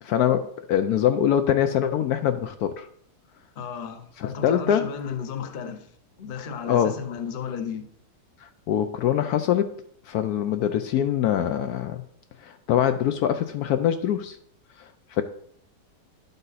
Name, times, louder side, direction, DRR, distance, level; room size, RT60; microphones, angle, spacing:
voice 1, 0.0-2.9 4.2-4.9 6.7-7.0 8.4-9.7 10.0-12.0 12.4-14.4 14.8-15.2, left 10 dB, 70° left, 1.0 m, -24 dB
voice 2, 3.6-5.9 6.2-7.9, left 7 dB, 45° left, 0.7 m, -34 dB
11.0 x 5.4 x 4.0 m
omnidirectional pair, 1.8 m